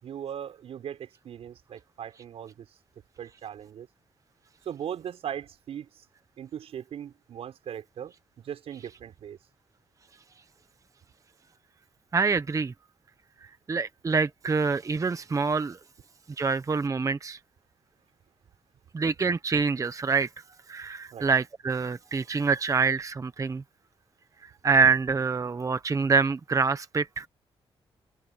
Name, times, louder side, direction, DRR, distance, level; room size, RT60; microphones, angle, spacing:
voice 1, 0.0-2.7 3.2-3.9 4.6-6.1 6.4-9.4 21.1-21.3, right 9 dB, 80° right, 5.8 m, -39 dB
voice 2, 12.1-12.7 13.7-15.8 16.4-17.4 18.9-20.3 20.7-23.6 24.6-27.3, right 5 dB, 30° right, 0.9 m, -25 dB
cardioid pair, 80°, 10 cm